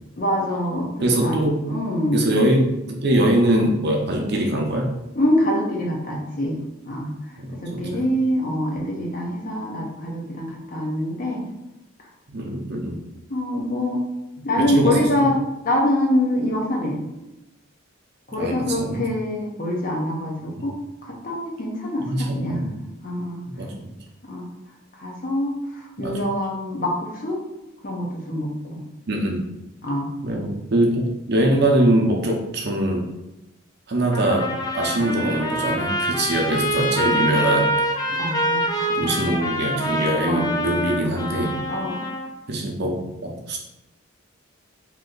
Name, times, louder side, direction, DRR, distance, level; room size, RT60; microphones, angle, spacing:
voice 1, 0.2-1.4 1.7-2.2 5.2-6.6 6.8-7.1 7.6-11.4 13.3-14.0 14.4-15.4 15.6-17.0 18.3-20.8 21.0-22.6 23.0-23.5 24.2-24.5 25.0-25.6 26.0-27.4 27.8-28.8 29.8-30.1 38.2-38.9 40.3-40.4 41.7-42.0, left 1 dB, 45° left, -2 dB, 0.8 m, -24 dB
voice 2, 1.0-1.6 2.1-4.9 7.4-8.0 12.3-13.0 14.4-15.3 18.4-19.0 20.6-20.7 22.0-22.9 23.6-23.7 26.0-26.2 29.1-29.4 30.2-33.1 33.9-37.7 38.9-41.5 42.5-43.6, right 1 dB, 55° right, 1 dB, 0.6 m, -22 dB
Trumpet, 34.1-42.3, equal, 20° left, 0.4 m, -25 dB
2.9 x 2.7 x 3.9 m, 0.93 s
head